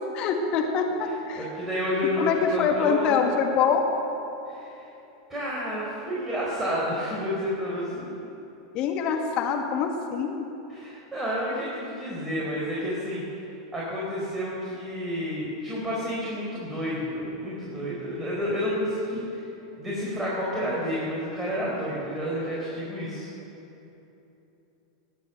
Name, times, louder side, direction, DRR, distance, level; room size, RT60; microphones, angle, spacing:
voice 1, 0.1-1.4 2.2-3.9 8.7-10.5, left 6 dB, 40° left, 3 dB, 1.8 m, -25 dB
voice 2, 1.0-3.2 4.5-4.8 5.3-8.1 10.7-19.5 19.8-23.3, equal, 10° right, -6 dB, 4.3 m, -30 dB
20.0 x 9.0 x 6.8 m, 3.0 s
figure-of-eight pair, 90°, 2 cm